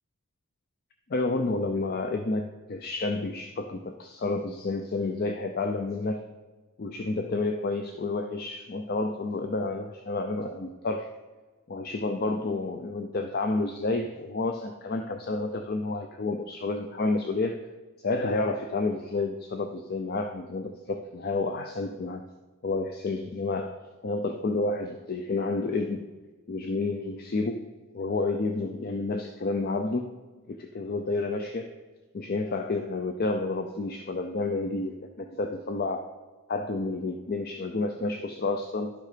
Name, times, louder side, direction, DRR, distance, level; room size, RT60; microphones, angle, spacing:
voice 1, 1.1-6.3 6.8-11.1 11.7-17.6 18.0-22.2 22.6-26.1 26.5-30.1 30.5-31.7 32.1-36.1 36.5-38.9, left 3 dB, 45° left, 6 dB, 0.4 m, -30 dB
11.5 x 6.5 x 5.0 m, 1.3 s
head